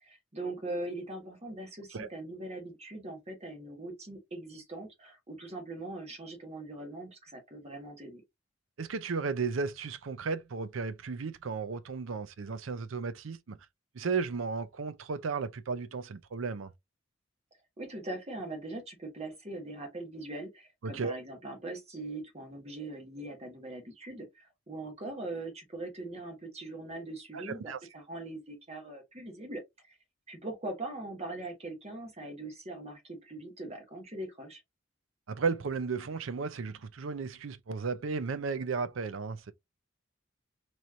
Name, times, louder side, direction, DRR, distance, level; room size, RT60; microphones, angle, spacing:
voice 1, 0.0-8.2 17.8-29.6 29.9-30.0 30.3-34.6, right 2 dB, 35° right, 1.5 m, -41 dB
voice 2, 8.8-13.6 13.9-16.7 20.8-21.2 27.3-27.8 35.3-39.5, right 4 dB, 80° right, 0.5 m, -34 dB
4.2 x 3.1 x 2.5 m
head